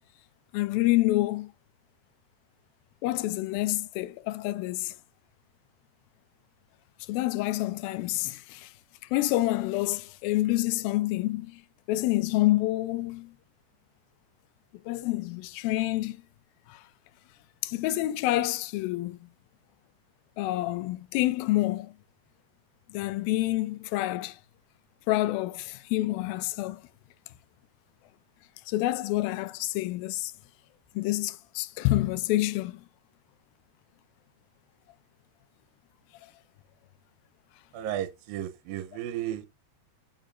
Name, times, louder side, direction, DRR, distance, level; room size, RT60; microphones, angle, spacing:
voice 1, 0.5-1.5 3.0-4.9 7.1-8.7 9.1-11.6 11.9-13.3 14.9-16.2 16.7-16.8 17.6-19.2 20.4-21.9 22.9-24.4 25.1-26.8 28.7-30.3 31.0-32.8, left 17 dB, 85° left, 2.4 m, -28 dB
voice 2, 37.7-39.5, right 11 dB, 85° right, 2.5 m, -34 dB
14.0 x 5.6 x 2.5 m
omnidirectional pair, 4.1 m